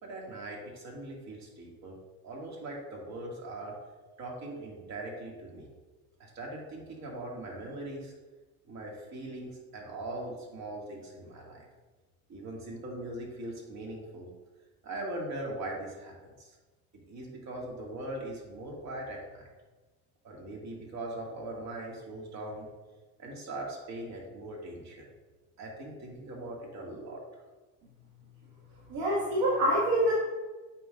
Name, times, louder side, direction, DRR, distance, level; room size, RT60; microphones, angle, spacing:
voice 1, 0.0-2.0 2.2-3.8 4.2-5.7 6.2-8.1 8.7-11.7 12.3-14.3 14.8-16.6 16.9-19.5 20.2-22.7 23.2-25.1 25.6-27.2, right 1 dB, 50° right, -2 dB, 2.1 m, -40 dB
voice 2, 28.9-30.1, right 1 dB, 70° right, -6 dB, 1.9 m, -26 dB
8.4 x 5.9 x 2.5 m, 1.2 s
supercardioid pair, 100°, 35 cm